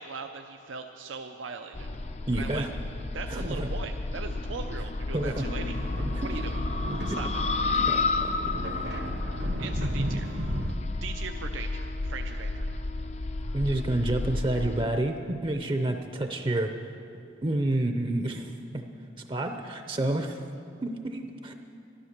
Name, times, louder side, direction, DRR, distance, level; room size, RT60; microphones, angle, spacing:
voice 1, 0.0-1.9 2.3-2.7 3.1-5.8 6.2-6.6 7.0-7.3 9.6-10.3 11.0-12.8, right 5 dB, 90° right, 5 dB, 0.5 m, -39 dB
sound 1, 1.7-14.8, left 3 dB, 35° left, 0.4 m, -31 dB
voice 2, 2.3-2.7 3.3-3.7 5.1-5.5 6.2-6.3 7.1-7.2 7.9-8.6 13.5-16.7 17.4-18.8 19.3-20.4 20.8-21.5, right 1 dB, 25° right, 6 dB, 0.5 m, -29 dB
sound 2, 5.7-10.8, right 1 dB, 65° right, 0.9 m, -35 dB
13.0 x 11.5 x 6.6 m, 2.7 s
head